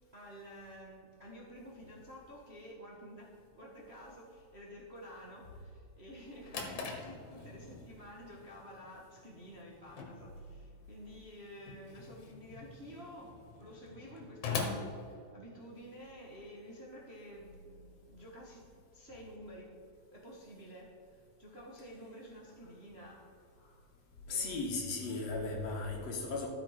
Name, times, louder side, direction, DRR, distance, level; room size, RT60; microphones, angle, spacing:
voice 1, 0.1-19.7 20.1-23.3 24.2-24.7, equal, 30° right, -4 dB, 1.1 m, -51 dB
Drawer open or close, 6.1-15.9, left 4 dB, 75° left, 2.9 m, -43 dB
voice 2, 24.3-26.5, left 3 dB, 60° left, 0 dB, 2.5 m, -36 dB
13.5 x 7.3 x 5.0 m, 2.4 s
omnidirectional pair, 3.5 m